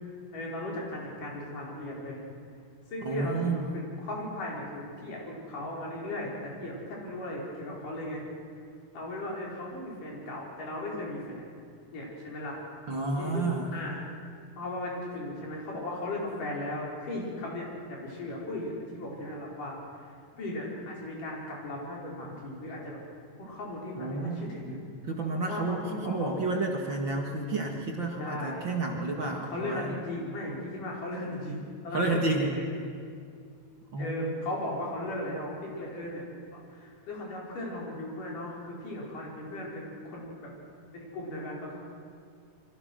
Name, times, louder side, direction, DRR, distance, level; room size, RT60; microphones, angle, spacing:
voice 1, 0.3-2.2 2.9-8.3 8.9-11.4 11.9-12.6 13.2-13.5 13.7-14.0 14.6-23.0 23.4-24.8 25.4-26.3 28.2-28.7 29.5-32.7 34.0-36.2 36.5-40.5 40.9-41.8, left 1 dB, 75° left, -3 dB, 6.6 m, -37 dB
voice 2, 3.0-3.6 12.9-13.7 24.0-24.4 25.1-29.9 31.9-32.5 33.9-34.3, right 2 dB, 40° right, 1 dB, 2.2 m, -30 dB
28.0 x 23.0 x 6.4 m, 2.3 s
omnidirectional pair, 3.7 m